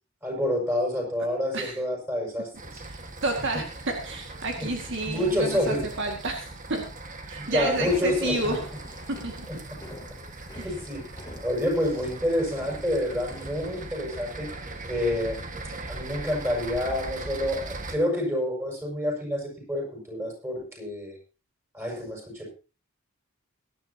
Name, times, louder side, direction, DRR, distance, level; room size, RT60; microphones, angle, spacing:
voice 1, 0.2-2.8 4.6-4.7 5.0-5.8 7.4-8.4 9.5-9.8 10.6-11.0 11.4-14.5 14.9-15.4 15.9-21.2 21.7-22.5, left 1 dB, 10° right, 0 dB, 6.8 m, -28 dB
sound 1, 2.5-17.9, right 2 dB, 40° right, 1.7 m, -40 dB
voice 2, 2.9-6.8 7.3-8.6 9.1-9.5 10.5-10.7, right 2 dB, 60° right, 3 dB, 2.0 m, -30 dB
sound 2, 7.6-13.8, left 1 dB, 20° left, 3.0 m, -44 dB
21.5 x 11.0 x 2.9 m, 0.34 s
head